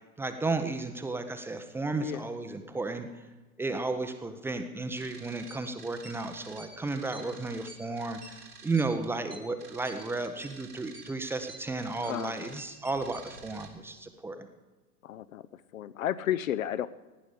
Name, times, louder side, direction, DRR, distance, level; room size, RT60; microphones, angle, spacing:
voice 1, 0.2-3.1 3.6-14.5, right 3 dB, 5° right, 7 dB, 0.6 m, -33 dB
sound 1, 5.0-13.7, right 4 dB, 85° right, 2.1 m, -49 dB
voice 2, 12.0-12.5 15.0-16.9, left 11 dB, 60° left, 15 dB, 0.7 m, -33 dB
17.0 x 10.0 x 5.0 m, 1.3 s
figure-of-eight pair, 95°, 46 cm